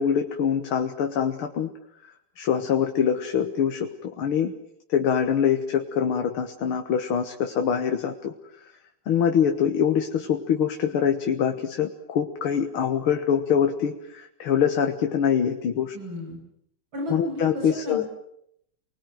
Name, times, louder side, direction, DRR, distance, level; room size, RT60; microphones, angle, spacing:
voice 1, 0.0-1.7 2.4-4.5 4.9-8.3 9.1-15.9 17.1-18.0, left 8 dB, 90° left, 5 dB, 2.3 m, -24 dB
voice 2, 15.9-16.4 16.9-18.1, left 1 dB, 70° right, 0 dB, 8.1 m, -33 dB
29.0 x 20.5 x 9.2 m, 0.77 s
omnidirectional pair, 2.2 m